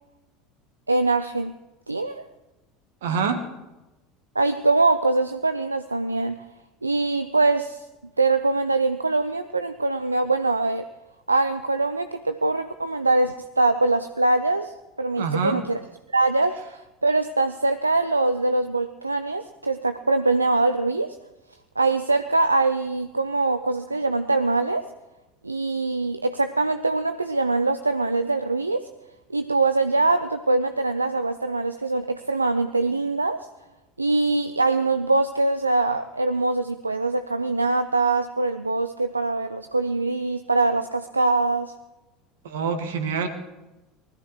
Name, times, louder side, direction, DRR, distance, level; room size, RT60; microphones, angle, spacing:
voice 1, 0.9-1.6 1.9-2.2 4.4-6.4 6.8-7.8 8.2-10.9 11.3-15.8 16.1-21.2 21.8-24.9 25.4-28.9 29.3-33.5 34.0-41.7, right 3 dB, 90° right, 10 dB, 0.4 m, -23 dB
voice 2, 3.0-3.5 15.2-15.6 42.4-43.3, right 5 dB, 70° right, 8 dB, 1.5 m, -25 dB
19.5 x 14.5 x 3.2 m, 1.0 s
figure-of-eight pair, 70°, 0 cm